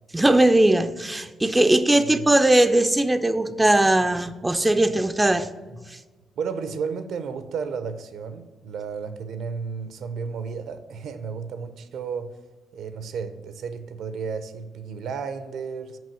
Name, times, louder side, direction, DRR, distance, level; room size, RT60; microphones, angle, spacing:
voice 1, 0.1-5.5 5.9-6.0, right 1 dB, 10° right, 9 dB, 0.4 m, -19 dB
voice 2, 6.4-12.3 12.7-16.0, right 5 dB, 75° right, 11 dB, 0.7 m, -33 dB
6.2 x 5.2 x 6.9 m, 1.3 s
cardioid pair, 90°, 0 cm